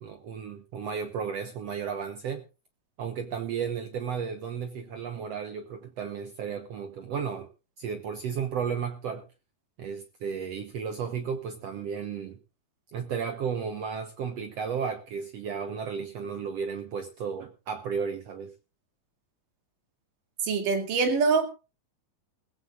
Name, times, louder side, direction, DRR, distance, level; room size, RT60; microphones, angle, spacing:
voice 1, 0.0-2.4 3.0-7.5 7.8-9.3 9.8-12.4 12.9-18.5, right 6 dB, 65° right, 1.9 m, -33 dB
voice 2, 20.4-21.5, right 4 dB, 85° right, 4.1 m, -24 dB
21.0 x 15.5 x 2.4 m
omnidirectional pair, 3.7 m